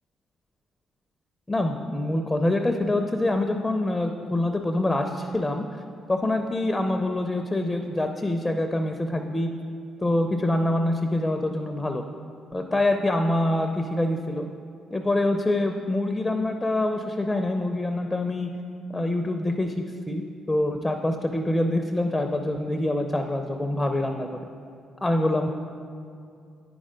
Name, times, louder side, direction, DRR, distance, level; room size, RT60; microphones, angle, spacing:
voice 1, 1.5-5.6 6.1-9.5 10.0-12.0 12.5-14.5 14.9-18.5 18.9-24.4 25.0-25.5, left 1 dB, 15° left, 5 dB, 0.5 m, -25 dB
9.7 x 5.4 x 5.1 m, 2.4 s
cardioid pair, 90°, 0 cm